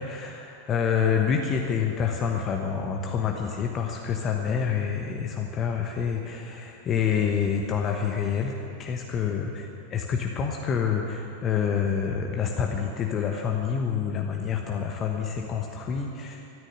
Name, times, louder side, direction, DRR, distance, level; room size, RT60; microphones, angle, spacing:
voice 1, 0.0-8.5 8.8-16.4, left 7 dB, 30° left, 2 dB, 1.2 m, -27 dB
14.0 x 9.8 x 9.8 m, 2.7 s
figure-of-eight pair, 90°, 0 cm